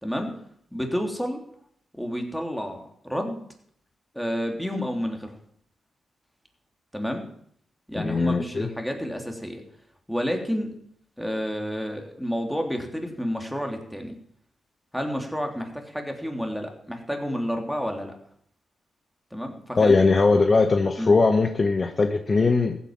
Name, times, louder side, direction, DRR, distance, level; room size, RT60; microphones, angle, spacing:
voice 1, 0.0-0.3 0.7-1.4 2.0-3.4 4.1-5.4 6.9-7.3 7.9-9.6 10.1-10.7 11.2-14.2 14.9-18.1 19.3-19.9 21.0-21.1, equal, ahead, 3 dB, 3.2 m, -30 dB
voice 2, 7.9-8.7 19.7-22.8, left 3 dB, 40° left, 7 dB, 1.2 m, -20 dB
15.0 x 8.4 x 7.4 m, 0.66 s
cardioid pair, 75°, 0 cm